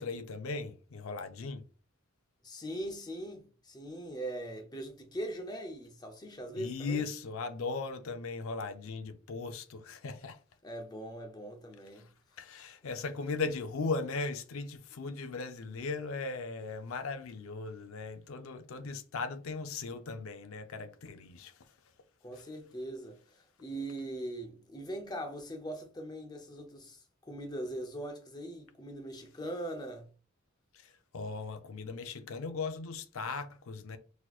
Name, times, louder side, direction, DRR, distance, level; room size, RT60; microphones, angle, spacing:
voice 1, 0.0-1.7 6.6-10.4 12.0-12.1 12.4-21.7 22.3-22.5 30.7-34.0, left 4 dB, 70° left, 0.5 m, -38 dB
voice 2, 2.4-7.0 10.6-12.1 22.2-30.1, right 1 dB, 20° left, 0.6 m, -41 dB
4.1 x 2.8 x 2.3 m
head